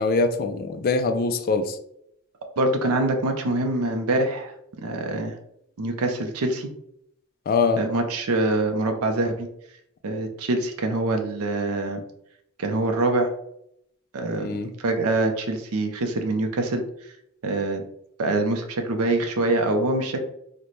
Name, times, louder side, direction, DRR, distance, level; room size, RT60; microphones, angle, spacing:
voice 1, 0.0-1.8 7.5-7.8 14.4-14.7, left 4 dB, 45° left, 8 dB, 0.3 m, -23 dB
voice 2, 2.6-4.5 4.8-5.3 5.8-6.7 7.8-9.5 10.0-12.0 12.6-13.3 14.1-16.8 17.4-17.8 18.2-20.2, right 2 dB, 85° right, 5 dB, 0.5 m, -24 dB
4.0 x 2.1 x 3.1 m, 0.75 s
head